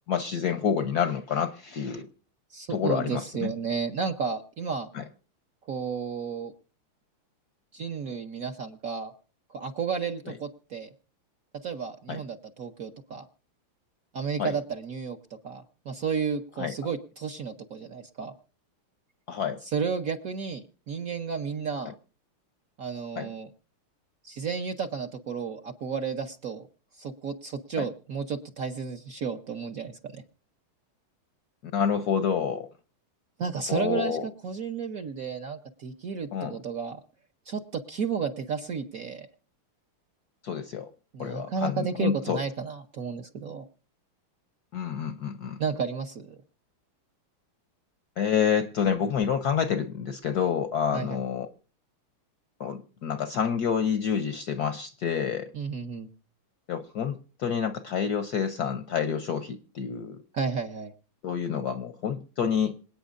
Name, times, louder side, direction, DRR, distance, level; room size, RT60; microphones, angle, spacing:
voice 1, 0.1-2.1 2.7-3.5 4.9-5.0 12.1-12.2 14.4-14.6 16.6-16.7 19.3-19.6 23.2-23.3 27.8-27.9 31.7-32.7 33.7-34.2 36.3-36.6 40.4-40.9 41.2-42.4 44.7-45.6 48.2-51.5 52.6-55.5 56.7-60.2 61.2-62.8, left 7 dB, 65° left, 1.0 m, -28 dB
voice 2, 2.5-4.9 5.7-6.5 7.7-9.1 9.5-10.9 11.6-13.3 14.1-15.2 15.4-18.3 19.6-21.9 22.8-23.5 24.2-26.7 27.0-30.2 33.4-37.0 37.5-39.3 41.1-43.7 45.6-46.4 50.9-51.2 55.5-56.1 60.3-60.9, right 6 dB, 55° right, 1.0 m, -32 dB
26.5 x 8.9 x 2.5 m
omnidirectional pair, 2.4 m